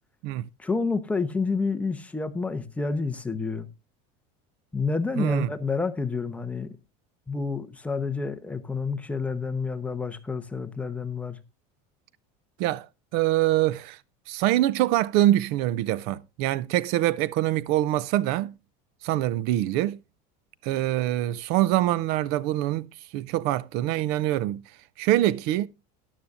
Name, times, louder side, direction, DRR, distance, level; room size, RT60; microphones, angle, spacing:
voice 1, 0.6-3.7 4.7-6.7 7.3-11.4, left 4 dB, 5° left, 0.8 m, -29 dB
voice 2, 5.2-5.5 12.6-12.9 13.1-14.0 14.3-18.5 19.0-20.0 20.6-24.6 25.0-25.7, right 14 dB, 55° right, 0.5 m, -24 dB
14.0 x 11.0 x 2.5 m
cardioid pair, 160°, 20 cm